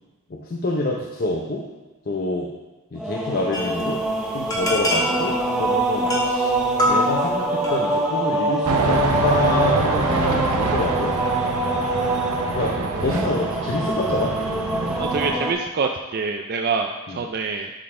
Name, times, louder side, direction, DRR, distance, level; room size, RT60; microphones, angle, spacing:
voice 1, 0.3-1.6 2.0-2.5 2.9-4.0 4.3-6.5 6.8-11.1 12.5-14.3 17.1-17.2, left 2 dB, 45° left, -1 dB, 0.6 m, -26 dB
sound 1, 3.0-15.5, right 1 dB, 5° right, 0.7 m, -24 dB
sound 2, 3.5-8.1, equal, 15° left, 1.3 m, -27 dB
sound 3, 8.6-15.4, right 3 dB, 80° right, 0.7 m, -25 dB
voice 2, 15.0-17.7, right 4 dB, 45° right, 3 dB, 0.4 m, -25 dB
11.0 x 4.0 x 3.7 m, 1.2 s
head